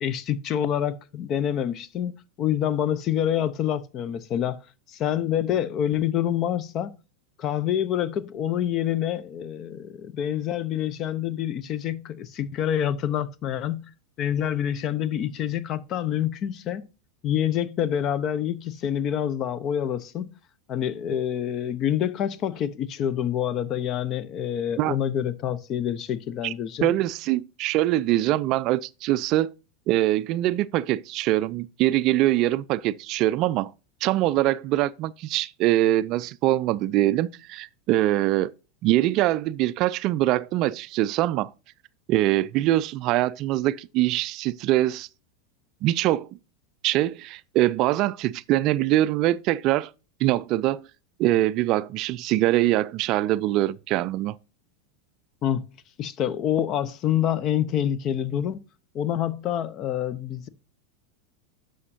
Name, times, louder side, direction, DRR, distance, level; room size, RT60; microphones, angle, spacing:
voice 1, 0.0-2.1 2.4-4.6 4.9-6.9 7.4-13.9 14.2-16.9 17.2-20.3 20.7-26.9 55.4-55.7 56.0-58.6 58.9-60.5, left 10 dB, 40° left, 0.7 m, -27 dB
voice 2, 26.8-29.5 29.9-33.7 34.0-38.5 38.8-41.5 42.1-45.1 45.8-46.3 46.8-49.9 50.2-50.9 51.2-54.4, right 15 dB, 45° right, 0.3 m, -23 dB
11.0 x 6.4 x 2.6 m
figure-of-eight pair, 90°, 0 cm